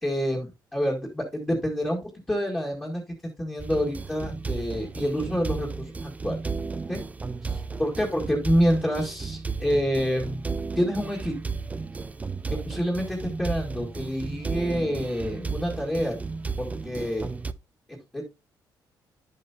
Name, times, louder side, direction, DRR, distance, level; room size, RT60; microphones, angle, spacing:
voice 1, 0.0-3.0 3.4-6.4 6.9-7.0 7.4-10.4 10.8-11.3 12.7-16.2 16.6-17.3 17.9-18.2, equal, 15° left, -2 dB, 2.0 m, -27 dB
sound 1, 3.6-17.5, right 4 dB, 20° right, 0.5 m, -34 dB
10.5 x 7.5 x 2.8 m, 0.26 s
cardioid pair, 135°, 8 cm